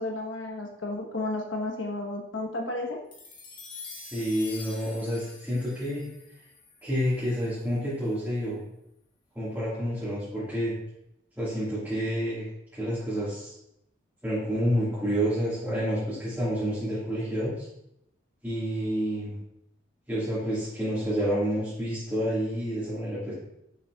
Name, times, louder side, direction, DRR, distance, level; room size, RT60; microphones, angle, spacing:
voice 1, 0.0-3.0, left 2 dB, 70° left, 1 dB, 1.1 m, -32 dB
sound 1, 3.1-7.6, left 4 dB, 25° left, 1.0 m, -46 dB
voice 2, 4.1-6.1 6.8-8.6 9.3-10.7 11.4-12.4 12.7-13.5 14.2-17.7 18.4-19.4 20.1-23.3, equal, 10° right, -11 dB, 1.8 m, -29 dB
6.6 x 6.1 x 2.4 m, 0.79 s
head